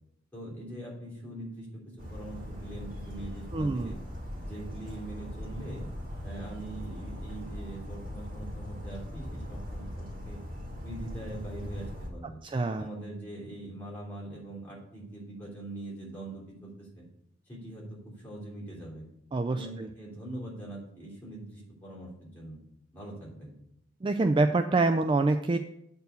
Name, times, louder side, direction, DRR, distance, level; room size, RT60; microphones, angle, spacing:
voice 1, 0.3-4.0 4.4-5.9 6.2-10.4 10.8-12.4 12.8-17.1 17.5-19.0 19.5-22.6 22.9-23.6, right 1 dB, 10° left, -6 dB, 3.2 m, -42 dB
Bird vocalization bird call bird song, 2.0-12.1, equal, 45° right, 2.0 m, -40 dB
voice 2, 3.5-3.9 12.4-12.9 19.3-19.9 24.0-25.6, right 3 dB, 25° right, 8 dB, 0.3 m, -26 dB
8.1 x 4.5 x 6.8 m, 0.79 s
head